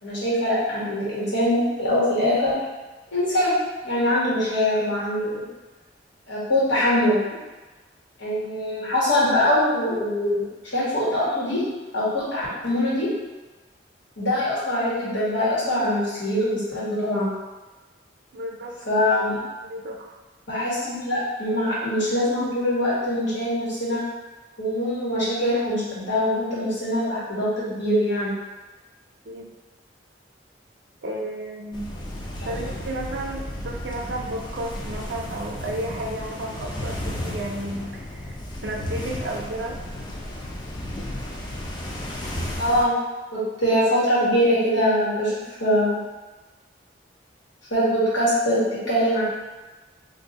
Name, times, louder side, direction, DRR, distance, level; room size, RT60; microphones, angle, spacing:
voice 1, 0.0-2.6 3.1-3.6 3.8-5.4 6.3-7.2 8.2-10.4 10.7-11.6 11.9-13.1 14.2-17.3 18.9-19.4 20.5-24.0 24.6-28.3 32.4-32.6 42.6-42.9 43.3-45.3 45.6-46.0 47.7-48.6 48.9-49.2, left 1 dB, 90° left, -9 dB, 1.4 m, -23 dB
voice 2, 18.3-18.8 19.6-20.2 29.2-29.5 31.0-31.9 32.4-38.3 38.6-39.8, right 1 dB, 60° right, 0 dB, 0.5 m, -32 dB
sound 1, 31.7-42.8, left 1 dB, 25° left, 0.4 m, -33 dB
2.6 x 2.6 x 4.0 m, 1.2 s
head